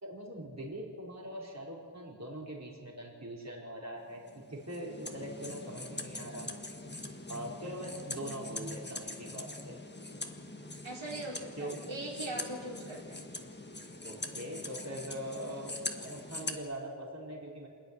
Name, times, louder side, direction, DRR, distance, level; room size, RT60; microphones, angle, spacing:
voice 1, 0.0-4.2 4.5-6.5 7.3-9.8 11.6-11.8 14.0-17.7, equal, 35° right, -3 dB, 4.6 m, -42 dB
sound 1, 4.2-16.6, left 2 dB, 20° left, 1.6 m, -43 dB
voice 2, 10.8-13.2, right 1 dB, 75° right, -3 dB, 4.7 m, -40 dB
28.0 x 10.5 x 9.7 m, 2.1 s
wide cardioid pair, 100°, 47 cm